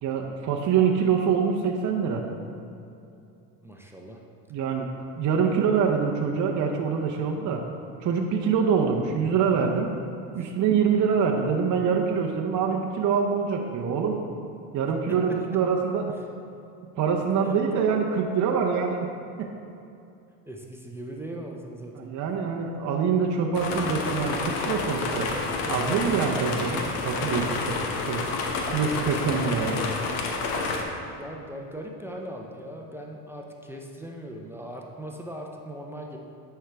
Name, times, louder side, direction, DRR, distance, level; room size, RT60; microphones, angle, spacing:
voice 1, 0.0-2.2 4.5-4.9 5.2-7.6 8.0-9.9 10.3-14.2 14.7-16.1 17.0-19.1 19.4-19.5 22.0-25.3 25.7-27.8 28.1-28.2 28.7-29.9, right 6 dB, 40° right, 1 dB, 0.7 m, -25 dB
voice 2, 3.6-4.2 17.5-17.8 20.5-22.1 31.0-36.2, right 1 dB, 5° right, 0 dB, 0.6 m, -39 dB
sound 1, 23.5-30.8, left 3 dB, 70° left, 1.1 m, -29 dB
10.0 x 4.7 x 3.4 m, 2.6 s
supercardioid pair, 85°, 47 cm